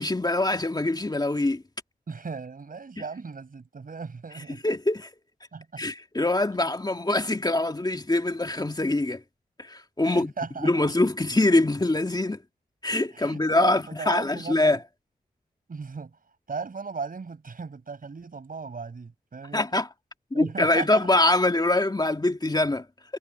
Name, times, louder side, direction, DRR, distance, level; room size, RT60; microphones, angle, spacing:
voice 1, 0.0-1.6 4.6-5.1 5.8-9.2 9.6-10.3 10.6-12.4 12.8-14.8 19.5-19.9 20.3-22.8, left 2 dB, 25° left, 2.2 m, -24 dB
voice 2, 2.1-4.6 5.5-5.8 10.0-10.9 13.1-14.8 15.7-16.2 16.5-19.8 20.3-21.1, right 5 dB, 65° right, 5.2 m, -37 dB
cardioid pair, 60°, 16 cm